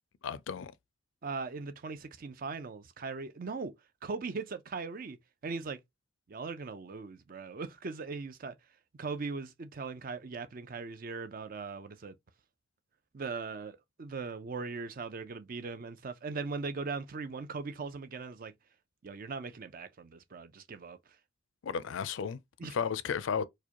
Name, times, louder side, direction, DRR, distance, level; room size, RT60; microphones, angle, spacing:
voice 1, 0.2-0.7 21.6-23.4, left 6 dB, 70° left, 0.4 m, -34 dB
voice 2, 1.2-3.7 4.0-5.2 5.4-5.8 6.3-8.5 9.0-12.2 13.1-18.5 19.0-21.0 22.6-22.7, right 4 dB, 45° right, 0.4 m, -39 dB
4.6 x 2.2 x 2.8 m
head